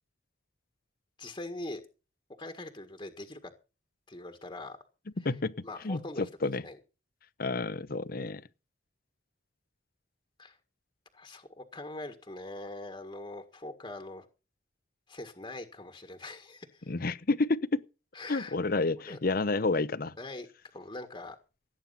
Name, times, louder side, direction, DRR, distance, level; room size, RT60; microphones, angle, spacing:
voice 1, 1.2-1.8 2.4-3.5 4.1-4.8 5.6-6.2 6.6-6.8 10.4-10.6 11.1-14.2 15.1-16.9 18.1-18.6 19.1-19.2 20.2-20.5 20.7-21.4, left 2 dB, 25° left, 1.7 m, -42 dB
voice 2, 5.2-5.5 5.8-6.6 7.4-8.4 16.9-17.8 18.3-20.1, left 3 dB, 50° left, 0.8 m, -30 dB
17.5 x 9.1 x 5.7 m
head